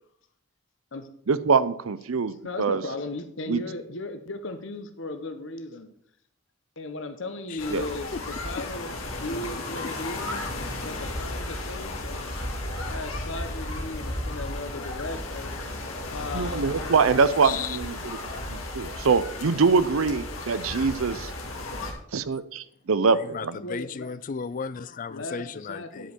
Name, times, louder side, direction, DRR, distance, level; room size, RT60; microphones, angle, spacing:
voice 1, 1.3-2.8 3.5-3.6 7.7-7.8 16.3-18.2 18.5-21.3 22.1-23.6, right 5 dB, 85° right, 0.6 m, -24 dB
voice 2, 2.4-5.9 6.8-8.9 9.2-10.5 10.8-12.3 12.9-15.5 16.1-17.2 23.6-24.1 25.1-26.1, left 2 dB, 65° left, 1.0 m, -36 dB
sound 1, 7.6-21.9, left 2 dB, 85° left, 2.1 m, -34 dB
voice 3, 17.4-17.8 23.2-26.1, left 6 dB, 40° left, 0.4 m, -35 dB
10.0 x 5.2 x 6.0 m
head